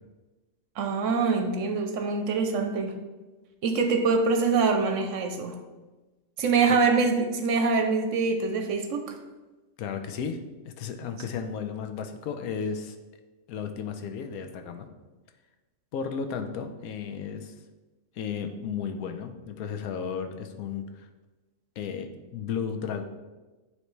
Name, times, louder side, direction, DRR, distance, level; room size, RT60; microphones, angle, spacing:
voice 1, 0.8-3.0 3.6-5.6 6.4-9.0, right 4 dB, 65° right, 5 dB, 0.9 m, -24 dB
voice 2, 9.8-10.4 10.6-13.0 13.5-14.9 15.9-17.5 18.2-21.1 21.8-23.0, left 6 dB, 85° left, 7 dB, 1.1 m, -34 dB
9.3 x 3.2 x 3.1 m, 1.2 s
omnidirectional pair, 1.5 m